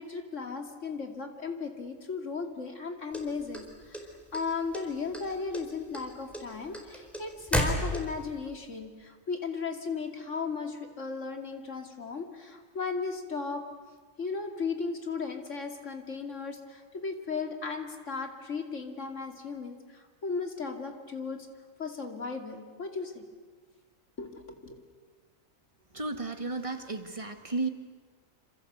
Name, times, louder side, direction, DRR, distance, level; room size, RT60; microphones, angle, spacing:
voice 1, 0.0-13.6 14.2-21.5 21.8-23.2 24.2-24.8, left 4 dB, 65° left, 5 dB, 3.0 m, -36 dB
sound 1, 3.1-4.4 4.7-5.3 5.5-8.3, equal, ahead, 4.2 m, -31 dB
voice 2, 25.9-27.7, right 3 dB, 25° right, 7 dB, 1.9 m, -33 dB
27.0 x 27.0 x 8.1 m, 1.5 s
omnidirectional pair, 1.4 m